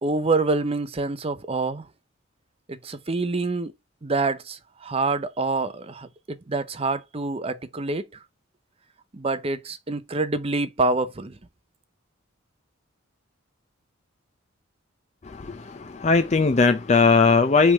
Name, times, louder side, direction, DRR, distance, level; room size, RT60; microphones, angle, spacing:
voice 1, 0.0-1.9 2.7-3.7 4.0-8.1 9.1-11.4, right 3 dB, 30° right, 0.6 m, -26 dB
voice 2, 15.2-17.7, left 4 dB, 35° left, 0.5 m, -19 dB
8.1 x 3.4 x 3.5 m
head